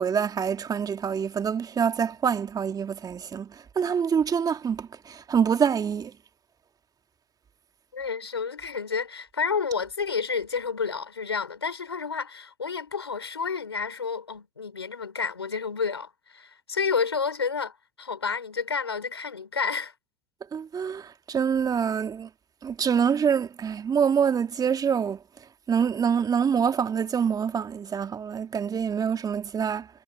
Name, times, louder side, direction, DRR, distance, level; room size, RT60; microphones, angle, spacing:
voice 1, 0.0-6.1 20.5-22.3 22.6-25.2 25.7-29.9, right 7 dB, 30° right, 2.1 m, -26 dB
voice 2, 7.9-19.9, left 5 dB, 90° left, 3.6 m, -30 dB
figure-of-eight pair, 75°, 13 cm